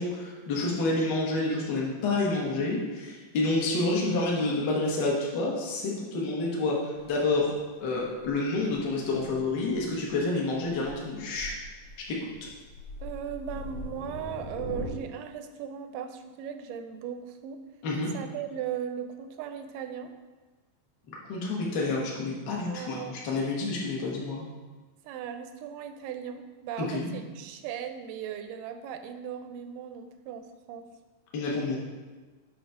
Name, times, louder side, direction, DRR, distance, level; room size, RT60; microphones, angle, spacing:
voice 1, 0.0-7.5 7.8-11.5 12.1-12.3 17.8-18.1 21.1-24.5 26.8-27.1 31.3-31.8, left 2 dB, 60° left, -3 dB, 1.1 m, -29 dB
Thunder, 7.0-14.9, left 1 dB, 90° left, 2.7 m, -43 dB
voice 2, 13.0-17.6 18.1-20.1 22.7-23.2 25.0-30.9, right 8 dB, 85° right, 8 dB, 2.1 m, -37 dB
7.9 x 3.1 x 5.7 m, 1.3 s
omnidirectional pair, 3.7 m